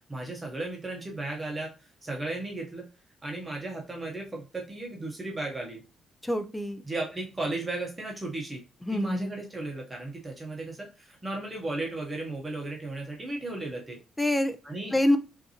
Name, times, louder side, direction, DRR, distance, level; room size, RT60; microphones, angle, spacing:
voice 1, 0.1-2.9 3.2-5.8 6.8-8.6 8.9-14.0 14.6-15.0, right 2 dB, 15° right, 0 dB, 0.9 m, -35 dB
voice 2, 6.2-6.8 8.9-9.3 14.2-14.6 14.9-15.2, left 1 dB, 5° left, 8 dB, 0.4 m, -25 dB
5.2 x 2.6 x 2.8 m, 0.31 s
cardioid pair, 145°, 0 cm